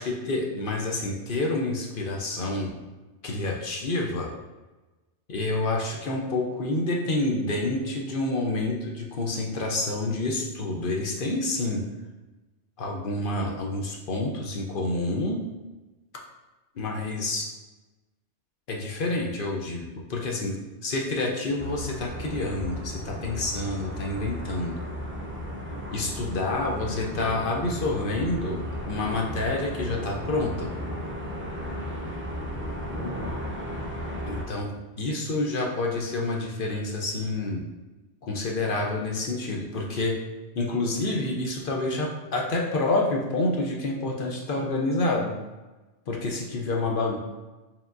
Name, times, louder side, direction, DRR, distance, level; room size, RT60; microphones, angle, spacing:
voice 1, 0.0-2.7 3.2-4.3 5.3-11.8 12.8-15.4 16.8-17.5 18.7-20.6 20.8-24.8 25.9-30.7 34.3-37.6 38.2-40.1 40.5-45.3 46.1-47.2, left 2 dB, 55° left, -1 dB, 0.7 m, -28 dB
sound 1, 21.6-34.4, equal, 20° right, 0.4 m, -35 dB
4.7 x 3.6 x 2.5 m, 1.2 s
omnidirectional pair, 1.3 m